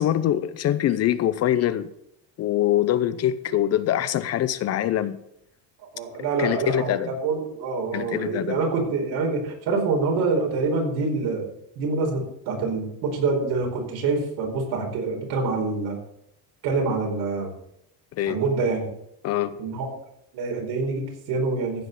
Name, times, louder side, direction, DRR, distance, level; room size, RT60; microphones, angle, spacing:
voice 1, 0.0-1.9 2.4-5.2 6.4-7.2 7.9-8.6 18.1-18.4 19.2-19.6, left 12 dB, 40° left, 14 dB, 0.6 m, -24 dB
voice 2, 5.8-11.5 11.7-16.0 16.6-17.5 18.3-18.9 19.6-19.9 20.3-21.9, right 4 dB, 75° right, 1 dB, 4.7 m, -26 dB
15.0 x 6.1 x 8.1 m, 0.76 s
cardioid pair, 175°, 39 cm